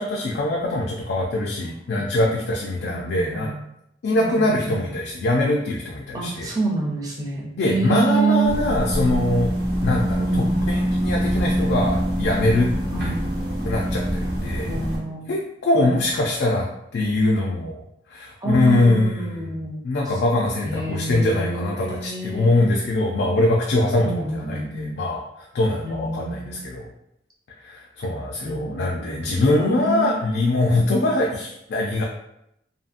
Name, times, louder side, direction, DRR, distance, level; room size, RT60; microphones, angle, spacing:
voice 1, 0.0-3.5 4.0-6.5 7.6-9.5 9.8-12.7 13.0-13.1 13.6-14.7 15.3-16.7 16.9-17.8 18.1-19.5 19.8-24.2 24.5-26.9 27.6-32.0, left 2 dB, 70° left, -2 dB, 0.4 m, -22 dB
voice 2, 2.8-3.6 4.1-4.9 6.1-8.5 10.2-10.7 12.9-13.4 14.7-15.3 15.8-16.0 18.4-20.2 20.6-22.7 24.0-25.0 25.8-26.6 28.4-30.1, right 3 dB, 20° right, -2 dB, 0.5 m, -28 dB
sound 1, 8.5-15.0, equal, 75° right, 0.9 m, -24 dB
2.7 x 2.6 x 2.5 m, 0.79 s
head